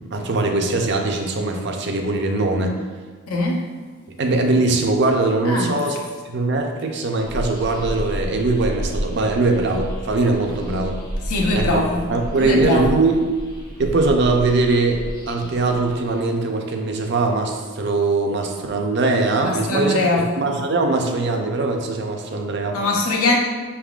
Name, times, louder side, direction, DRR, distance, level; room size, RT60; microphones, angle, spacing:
voice 1, 0.0-2.7 4.2-6.0 6.2-11.0 11.5-11.8 12.1-13.2 13.8-22.8, right 3 dB, 50° right, 3 dB, 0.5 m, -21 dB
voice 2, 3.3-3.6 5.4-5.7 11.2-12.1 12.4-13.0 19.4-20.3 22.7-23.4, left 2 dB, 85° left, 0 dB, 0.8 m, -21 dB
sound 1, 7.2-16.3, equal, 40° left, 0.9 m, -31 dB
5.7 x 3.5 x 2.4 m, 1.5 s
head